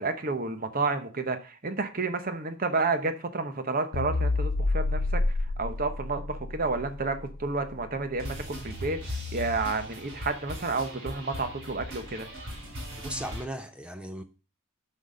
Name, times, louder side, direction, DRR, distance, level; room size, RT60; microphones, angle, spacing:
voice 1, 0.0-5.2 5.6-12.3, right 3 dB, 40° right, 0.9 m, -30 dB
sound 1, 3.9-8.4, left 2 dB, 80° left, 0.7 m, -30 dB
sound 2, 8.2-13.4, left 1 dB, 60° right, 4.1 m, -38 dB
voice 2, 13.0-14.2, right 1 dB, 5° right, 0.4 m, -37 dB
6.1 x 5.4 x 6.4 m
head